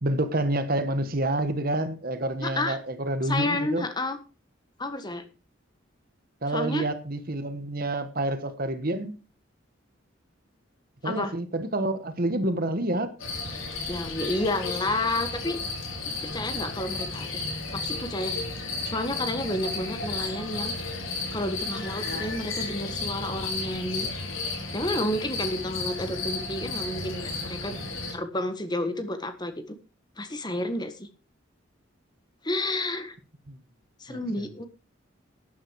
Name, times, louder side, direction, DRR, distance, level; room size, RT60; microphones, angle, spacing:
voice 1, 0.0-3.9 6.4-9.2 11.0-13.1 33.5-33.6 34.1-34.2, right 1 dB, 45° right, 1.3 m, -28 dB
voice 2, 2.4-2.8 3.2-4.2 4.8-5.2 6.5-6.8 11.0-11.3 13.9-15.6 16.2-17.4 17.7-18.5 18.8-20.7 21.3-24.1 24.7-27.7 28.1-29.8 30.2-31.1 32.4-33.1 34.0-34.7, left 1 dB, 20° left, 1.5 m, -30 dB
sound 1, 13.2-28.1, left 3 dB, 85° left, 4.6 m, -33 dB
12.5 x 10.0 x 4.7 m
head